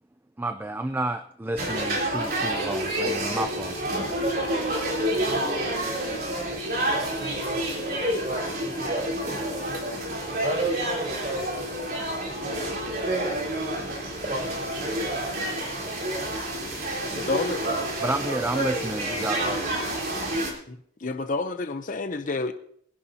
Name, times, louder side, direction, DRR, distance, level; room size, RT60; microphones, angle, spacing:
voice 1, 0.4-3.8 18.0-20.0, right 2 dB, 10° right, 8 dB, 0.4 m, -31 dB
sound 1, 1.6-20.5, right 1 dB, 55° right, 3.7 m, -29 dB
voice 2, 4.1-13.1 13.4-13.6 14.2-15.9, right 2 dB, 35° right, 1 dB, 5.5 m, -35 dB
voice 3, 17.1-17.6 20.7-22.5, left 3 dB, 45° left, 9 dB, 0.7 m, -29 dB
23.5 x 11.0 x 2.8 m, 0.63 s
head